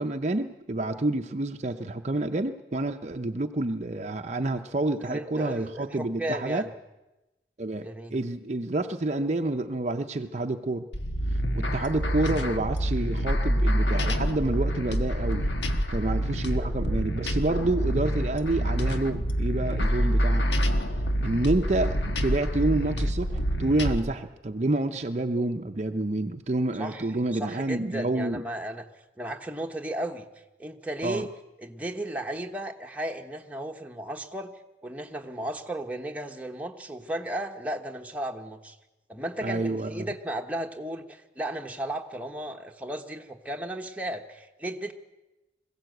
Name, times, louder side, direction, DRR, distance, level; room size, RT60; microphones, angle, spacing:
voice 1, 0.0-6.6 7.6-10.9 11.3-15.5 15.9-20.5 21.2-28.4 31.0-31.3 39.4-40.1, right 2 dB, 40° right, 6 dB, 0.6 m, -28 dB
voice 2, 5.0-6.7 7.8-8.2 12.4-12.5 16.6-16.7 26.8-27.1 27.4-28.9 29.2-30.3 30.6-31.3 31.6-34.5 34.8-38.8 39.1-44.9, right 1 dB, 10° right, 2 dB, 1.2 m, -35 dB
sound 1, 10.9-24.0, equal, 80° left, 1.4 m, -27 dB
21.0 x 16.0 x 7.9 m, 1.0 s
head